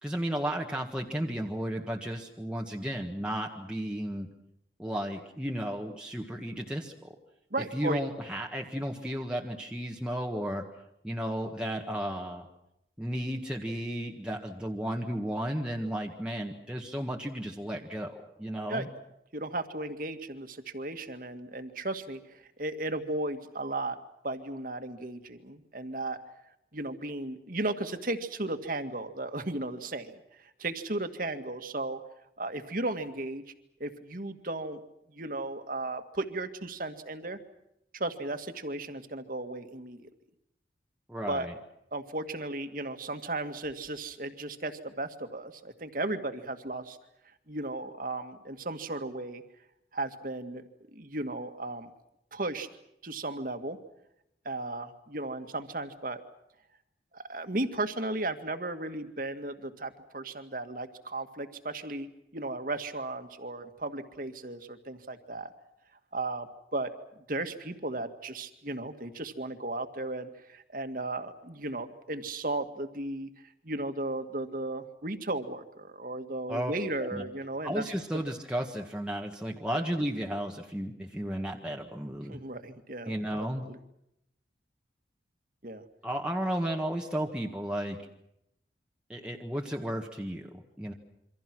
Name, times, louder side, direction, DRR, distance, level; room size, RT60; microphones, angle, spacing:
voice 1, 0.0-4.3 4.8-6.9 7.7-10.7 11.0-12.5 13.0-18.1 18.4-18.9 41.1-41.5 76.5-76.7 77.1-77.2 77.6-82.4 83.0-83.6 86.0-88.0 89.1-90.9, equal, 5° right, 0 dB, 1.6 m, -33 dB
voice 2, 7.5-8.0 18.7-18.9 19.3-24.0 24.2-26.2 26.7-32.0 32.4-33.4 33.8-34.8 35.1-37.4 37.9-40.0 41.3-41.5 41.9-47.0 47.5-49.4 49.9-50.6 50.9-51.9 52.3-52.7 53.0-53.8 54.5-56.2 57.1-62.1 62.3-65.5 66.1-73.3 73.6-77.8 79.7-79.9 82.3-83.1 83.7-83.8 85.6-85.8, right 2 dB, 45° right, 7 dB, 2.0 m, -35 dB
28.0 x 25.0 x 6.2 m, 0.81 s
head